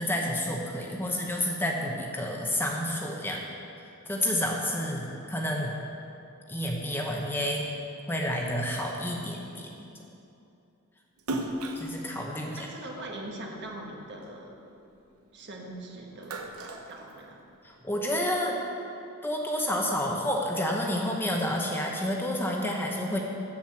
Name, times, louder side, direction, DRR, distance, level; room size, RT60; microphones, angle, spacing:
voice 1, 0.0-3.4 4.1-5.8 6.5-7.7 8.1-9.9 11.8-12.7 17.6-18.6 19.2-23.2, left 1 dB, 10° left, -1 dB, 0.8 m, -30 dB
Splash splatter, 11.2-13.7 14.2-15.6 16.0-17.7, right 1 dB, 75° right, 0.9 m, -36 dB
voice 2, 12.5-14.6 15.3-17.4, right 1 dB, 50° right, 0 dB, 1.3 m, -42 dB
7.5 x 7.5 x 7.3 m, 2.7 s
head